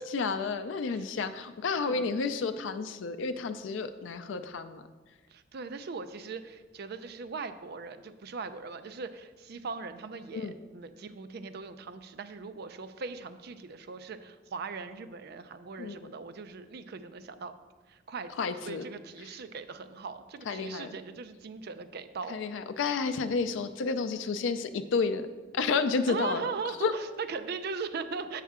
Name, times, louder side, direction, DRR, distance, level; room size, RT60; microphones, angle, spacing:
voice 1, 0.0-4.8 10.3-10.5 15.8-16.1 18.4-18.9 20.5-20.9 22.3-25.3 25.5-26.4 26.8-26.9, left 4 dB, 80° left, 9 dB, 0.4 m, -31 dB
voice 2, 5.3-17.5 17.9-18.3 18.7-22.4 26.1-28.4, right 4 dB, 55° right, 10 dB, 0.4 m, -39 dB
7.2 x 5.7 x 3.6 m, 1.3 s
head